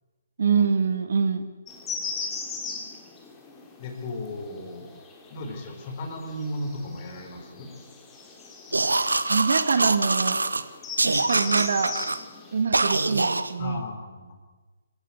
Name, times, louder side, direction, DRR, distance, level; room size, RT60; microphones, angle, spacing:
voice 1, 0.4-1.5 9.3-10.4 11.0-12.0 12.5-13.8, right 5 dB, 55° right, 10 dB, 1.8 m, -25 dB
sound 1, 1.7-12.6, left 4 dB, 15° left, 3.5 m, -39 dB
voice 2, 3.8-4.9 5.3-7.7 13.6-14.4, left 2 dB, 35° left, 5 dB, 4.7 m, -35 dB
sound 2, 8.7-10.6 11.0-12.2 12.7-13.5, right 3 dB, 75° right, 1.4 m, -24 dB
26.5 x 16.5 x 8.0 m, 1.3 s
figure-of-eight pair, 135°, 0 cm